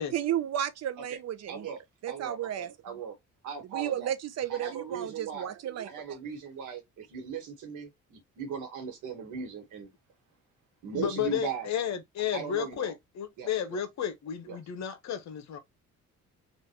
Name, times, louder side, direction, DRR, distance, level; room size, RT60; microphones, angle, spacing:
voice 1, 0.0-1.7 2.0-2.7 3.7-6.2, right 10 dB, 60° right, 0.6 m, -33 dB
voice 2, 1.5-1.8 2.1-3.2 3.4-4.1 4.5-5.5 5.8-9.9 10.8-11.7 12.3-12.9 13.4-13.8 14.4-14.6, right 6 dB, 80° right, 1.5 m, -38 dB
voice 3, 10.9-15.6, left 9 dB, 65° left, 0.9 m, -32 dB
3.3 x 2.5 x 2.9 m
cardioid pair, 90°, 30 cm